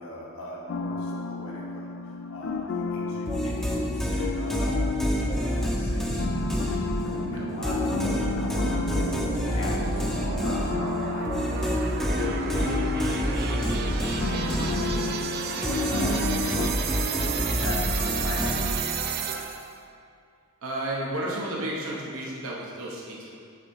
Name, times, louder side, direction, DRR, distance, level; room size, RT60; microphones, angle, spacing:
voice 1, 0.0-18.8, left 1 dB, 80° left, -3 dB, 1.3 m, -40 dB
sound 1, 0.7-16.7, left 4 dB, 60° left, 0.4 m, -33 dB
sound 2, 3.3-7.2 7.6-15.3 15.6-19.1, equal, ahead, 0.7 m, -28 dB
sound 3, 5.7-19.7, right 5 dB, 50° right, 0.4 m, -33 dB
voice 2, 20.6-23.3, right 1 dB, 75° right, -3 dB, 1.0 m, -32 dB
7.0 x 3.7 x 5.3 m, 2.3 s
head